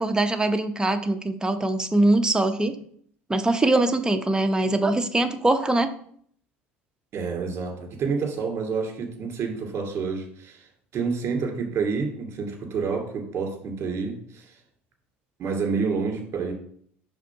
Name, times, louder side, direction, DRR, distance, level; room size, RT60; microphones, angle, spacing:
voice 1, 0.0-2.8 3.3-5.9, right 2 dB, 10° right, 7 dB, 0.7 m, -22 dB
voice 2, 7.1-10.7 10.9-14.5 15.4-16.5, right 5 dB, 40° right, 1 dB, 2.4 m, -28 dB
5.0 x 3.7 x 5.6 m, 0.62 s
hypercardioid pair, 70°, 7 cm